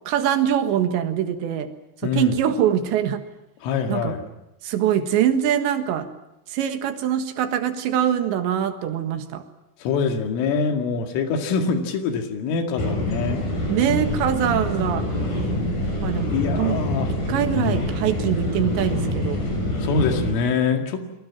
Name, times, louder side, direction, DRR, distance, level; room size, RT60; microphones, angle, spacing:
voice 1, 0.1-1.7 2.0-3.2 3.9-4.2 4.6-6.1 6.5-9.4 13.7-15.1 16.0-16.8 17.3-19.4, right 9 dB, 70° right, 8 dB, 3.7 m, -23 dB
voice 2, 2.0-2.3 3.6-4.3 9.8-13.4 16.3-17.1 17.5-17.8 19.8-21.0, left 5 dB, 85° left, 5 dB, 4.8 m, -24 dB
sound 1, 12.8-20.3, left 1 dB, 45° left, 7.1 m, -26 dB
29.0 x 23.0 x 7.4 m, 0.92 s
omnidirectional pair, 5.6 m